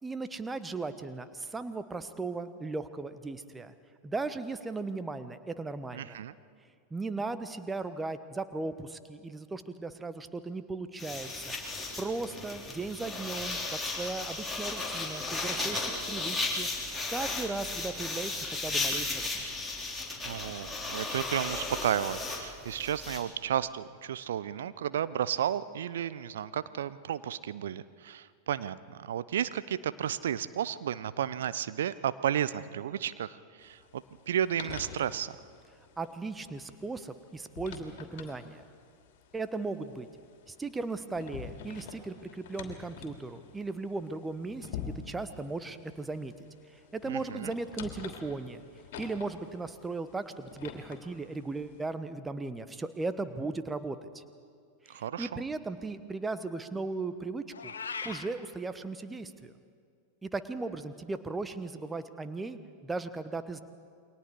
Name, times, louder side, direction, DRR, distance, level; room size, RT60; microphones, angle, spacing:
voice 1, 0.0-3.7 4.0-6.2 6.9-11.6 12.0-16.7 17.1-19.5 36.0-38.6 39.3-40.1 40.5-46.3 46.7-48.6 49.0-54.2 54.8-57.7 58.0-59.5 60.2-63.6, right 3 dB, 10° right, 11 dB, 1.2 m, -37 dB
voice 2, 5.9-6.3 20.2-35.4 47.1-47.5 54.9-55.4, right 10 dB, 60° right, 15 dB, 0.7 m, -33 dB
nails on paper, 11.0-23.2, left 3 dB, 5° left, 3.9 m, -35 dB
sound 1, 33.6-51.9, left 7 dB, 50° left, 3.0 m, -48 dB
Meow, 57.5-58.3, left 5 dB, 70° left, 1.4 m, -38 dB
28.5 x 23.0 x 4.8 m, 2.2 s
figure-of-eight pair, 90°, 0 cm